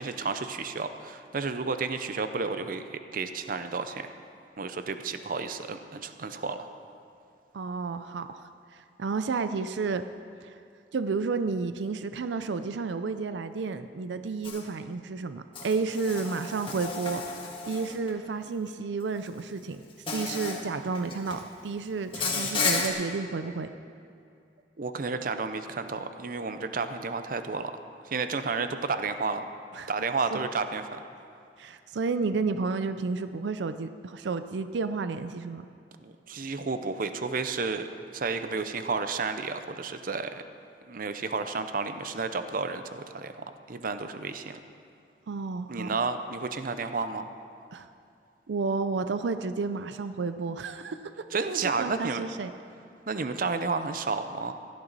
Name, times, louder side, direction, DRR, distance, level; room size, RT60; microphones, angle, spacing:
voice 1, 0.0-4.1 4.6-6.7 24.8-27.7 28.1-29.4 29.9-31.0 36.0-37.8 38.1-40.3 40.9-44.6 45.7-47.3 51.3-52.2 53.1-54.5, right 4 dB, 50° right, 9 dB, 0.6 m, -31 dB
voice 2, 7.5-10.0 10.4-10.6 10.9-17.2 17.7-19.8 20.1-23.7 29.7-29.9 30.3-30.5 31.6-35.7 45.3-46.0 47.7-47.9 48.5-51.0 51.5-52.5, right 4 dB, 90° right, 10 dB, 0.5 m, -31 dB
Insect, 14.4-14.6 15.6-18.1 19.3-19.4 20.1-20.6 20.9-21.4 22.1-22.9, left 4 dB, 30° left, 1.7 m, -32 dB
17.0 x 12.0 x 4.1 m, 2.5 s
head